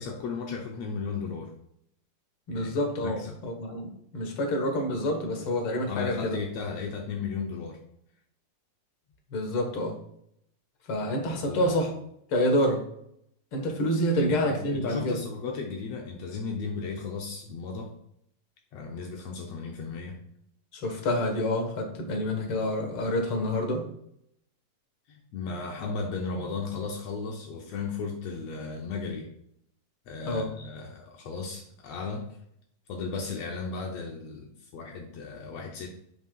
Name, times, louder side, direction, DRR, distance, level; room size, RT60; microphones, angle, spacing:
voice 1, 0.0-1.5 2.5-2.7 3.0-3.4 5.9-7.8 11.1-11.8 14.1-17.9 18.7-20.2 25.1-29.3 30.1-32.3 32.9-35.9, left 4 dB, 80° left, 1 dB, 1.5 m, -35 dB
voice 2, 2.5-6.4 9.3-10.0 10.9-11.9 12.3-12.8 13.5-15.2 20.7-23.8 30.3-30.5, left 1 dB, 50° left, 3 dB, 1.8 m, -28 dB
10.5 x 5.6 x 2.4 m, 0.72 s
omnidirectional pair, 3.9 m